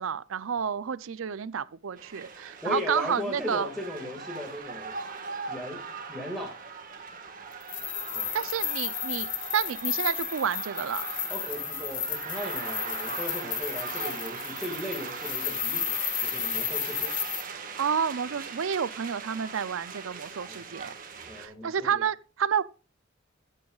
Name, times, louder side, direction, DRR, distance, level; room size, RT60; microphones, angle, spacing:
voice 1, 0.0-3.7 8.3-11.1 17.8-20.9 21.4-22.6, right 7 dB, 75° right, 0.5 m, -30 dB
sound 1, 2.0-21.5, right 5 dB, 45° right, 1.5 m, -40 dB
voice 2, 2.6-5.0 5.5-5.8 6.1-6.6 8.1-8.3 11.3-17.2 20.5-20.6 21.3-22.0, left 1 dB, ahead, 1.9 m, -37 dB
sound 2, 7.6-17.4, left 9 dB, 40° left, 1.4 m, -33 dB
14.5 x 9.0 x 2.4 m
head